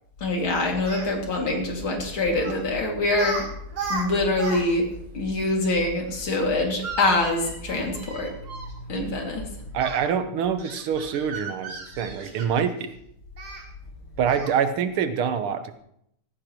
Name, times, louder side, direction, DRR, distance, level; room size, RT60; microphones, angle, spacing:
voice 1, 0.2-3.5 3.9-4.8 5.1-8.3 8.9-9.5, left 2 dB, 70° left, 1 dB, 3.2 m, -24 dB
Speech, 0.7-1.1 2.4-2.6 3.1-3.4 3.7-4.6 4.9-5.0 6.6-8.7 9.8-10.0 10.6-12.7 13.4-13.6 14.3-14.6, right 3 dB, 60° right, 3.0 m, -35 dB
voice 2, 9.7-12.9 14.2-15.8, right 7 dB, 85° right, 10 dB, 1.9 m, -25 dB
17.0 x 15.0 x 3.0 m, 0.72 s
omnidirectional pair, 2.4 m